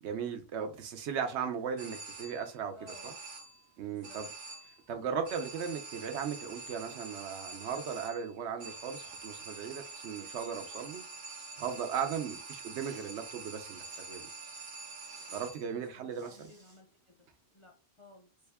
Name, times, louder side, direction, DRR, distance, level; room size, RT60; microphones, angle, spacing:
voice 1, 0.0-3.1 3.8-4.3 4.9-11.0 11.6-14.3 15.3-16.4, right 7 dB, 85° right, 1.0 m, -37 dB
sound 1, 1.8-2.6 2.9-3.7 4.0-4.9 5.2-15.8, right 3 dB, 55° right, 0.8 m, -46 dB
voice 2, 2.7-3.2 3.8-4.2 15.9-17.3 17.5-18.3, left 1 dB, 40° left, 0.4 m, -56 dB
Respiratory sounds, 12.7-13.2 13.8-14.1 14.9-15.4 16.1-16.8, right 2 dB, 25° right, 0.6 m, -59 dB
3.5 x 2.2 x 3.4 m
omnidirectional pair, 1.1 m